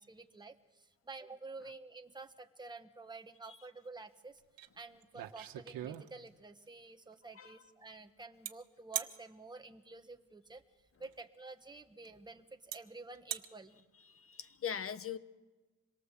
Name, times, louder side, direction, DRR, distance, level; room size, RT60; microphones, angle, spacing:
voice 1, 0.0-4.4 4.7-10.6 11.0-13.8, right 3 dB, 10° right, 6 dB, 1.3 m, -50 dB
sound 1, 4.6-4.7 5.0-6.4 8.4-8.5 8.9-9.2 11.0-11.1 12.0-12.1 12.7-12.8 13.1-13.5, right 12 dB, 85° right, 1.4 m, -40 dB
voice 2, 14.1-15.2, left 8 dB, 40° left, 13 dB, 1.1 m, -40 dB
26.5 x 22.5 x 7.5 m, 1.2 s
cardioid pair, 145°, 34 cm